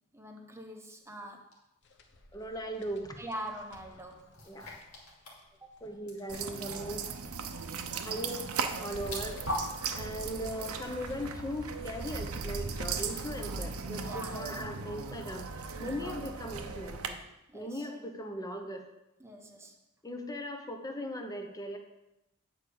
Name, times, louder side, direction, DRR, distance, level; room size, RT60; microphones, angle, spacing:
voice 1, 0.1-1.5 3.2-4.3 5.6-5.7 14.0-14.4 17.5-17.9 19.2-19.8, right 1 dB, 10° right, 3 dB, 0.9 m, -43 dB
sound 1, 1.5-1.6 4.3-5.4 5.7-5.8 6.1-6.8 8.7-9.7, left 1 dB, 80° left, 2.4 m, -39 dB
sound 2, 1.8-13.3, left 3 dB, 55° left, 1.0 m, -57 dB
voice 2, 2.3-3.2 4.5-4.8 5.8-7.1 7.9-17.2 17.5-18.8 20.0-21.8, equal, 15° left, 4 dB, 0.9 m, -39 dB
sound 3, 6.3-17.1, right 5 dB, 85° right, 0.8 m, -37 dB
9.0 x 4.8 x 7.0 m, 0.92 s
head